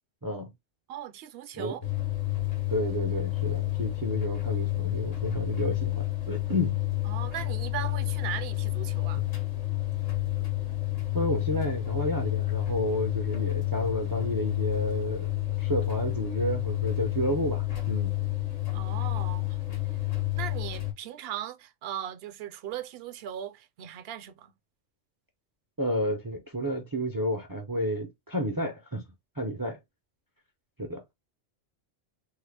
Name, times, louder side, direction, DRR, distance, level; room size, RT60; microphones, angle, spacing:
voice 1, 0.9-1.8 7.1-9.2 18.7-19.6 20.3-24.5, right 11 dB, 65° right, 0.7 m, -38 dB
sound 1, 1.8-20.9, left 18 dB, 60° left, 1.2 m, -30 dB
voice 2, 2.7-6.8 9.1-9.2 11.1-15.3 15.6-18.2 25.8-29.0 29.4-29.8 30.8-31.0, equal, 35° right, 0.3 m, -31 dB
3.5 x 2.1 x 3.2 m
omnidirectional pair, 1.2 m